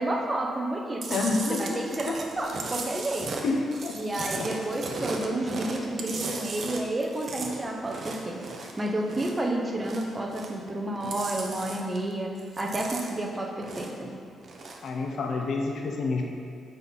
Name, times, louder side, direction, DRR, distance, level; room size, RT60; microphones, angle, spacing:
voice 1, 0.0-1.2 1.5-3.3 4.0-8.4 8.8-14.1, right 1 dB, 20° right, 1 dB, 0.9 m, -30 dB
Chewing mastication, 1.0-9.5 9.8-10.7 11.0-12.1 12.4-14.1 14.4-14.9, right 3 dB, 50° right, 0.8 m, -36 dB
voice 2, 1.1-2.2 3.4-4.5 11.0-11.1 14.8-16.2, left 3 dB, 65° left, 1 dB, 0.8 m, -29 dB
8.0 x 5.5 x 4.1 m, 2.2 s
cardioid pair, 115°, 0 cm